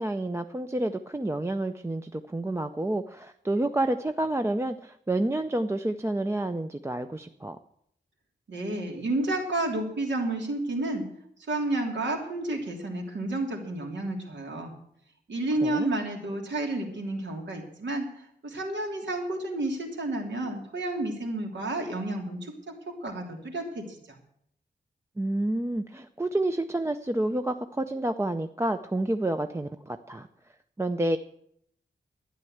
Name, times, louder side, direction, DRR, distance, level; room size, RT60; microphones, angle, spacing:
voice 1, 0.0-7.6 15.6-15.9 25.2-30.3 30.8-31.2, right 1 dB, 15° right, 7 dB, 0.5 m, -29 dB
voice 2, 8.5-11.0 11.5-14.7 15.3-24.2, right 2 dB, 80° right, 1 dB, 3.2 m, -31 dB
12.5 x 9.7 x 7.9 m, 0.70 s
wide cardioid pair, 155°, 19 cm